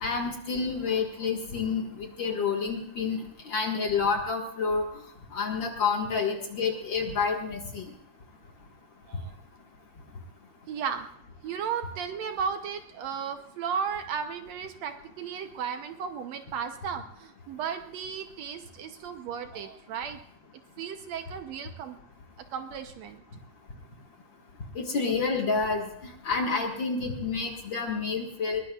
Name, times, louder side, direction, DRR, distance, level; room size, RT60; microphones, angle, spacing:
voice 1, 0.0-4.9 5.3-7.9 24.8-28.6, left 5 dB, 45° left, 1 dB, 2.1 m, -29 dB
voice 2, 10.7-11.1 11.4-20.2 20.8-22.0 22.5-23.2, right 7 dB, 70° right, 7 dB, 1.9 m, -35 dB
21.5 x 21.0 x 2.4 m, 0.72 s
omnidirectional pair, 3.4 m